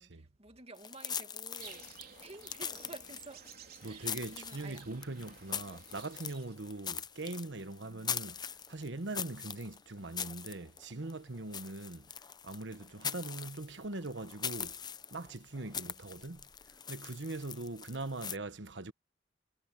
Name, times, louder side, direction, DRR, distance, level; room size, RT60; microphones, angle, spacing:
voice 1, 0.0-1.9 2.2-3.5 3.8-4.8 5.1-5.3 7.7-8.0 15.6-16.1, right 2 dB, 35° right, 2.3 m, -52 dB
sound 1, 0.8-18.4, left 7 dB, 25° left, 0.6 m, -42 dB
sound 2, 1.6-6.6, right 7 dB, 55° right, 3.9 m, -54 dB
voice 2, 3.8-12.1 12.4-14.8 15.1-16.5 16.9-18.9, right 2 dB, 80° right, 1.3 m, -41 dB
head